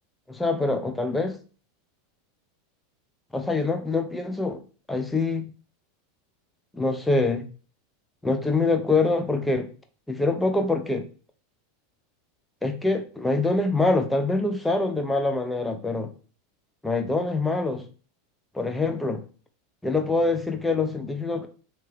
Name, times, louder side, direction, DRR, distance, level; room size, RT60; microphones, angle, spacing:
voice 1, 0.3-1.4 3.3-4.6 4.9-5.5 6.7-7.5 8.2-9.7 10.1-11.1 12.6-16.1 16.8-17.9 18.5-19.2 19.8-21.5, left 3 dB, 10° left, 0.5 m, -25 dB
3.3 x 2.9 x 3.2 m
hypercardioid pair, 95°, 0 cm